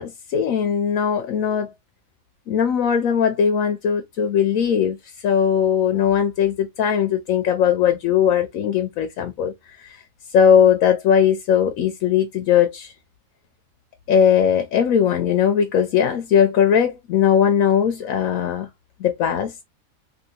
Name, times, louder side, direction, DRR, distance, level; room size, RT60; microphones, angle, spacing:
voice 1, 0.0-1.7 2.5-5.0 5.2-9.5 9.8-10.0 10.3-12.9 14.1-18.7 19.0-19.5, left 8 dB, 85° left, 1.1 m, -19 dB
2.8 x 2.7 x 2.7 m
omnidirectional pair, 1.4 m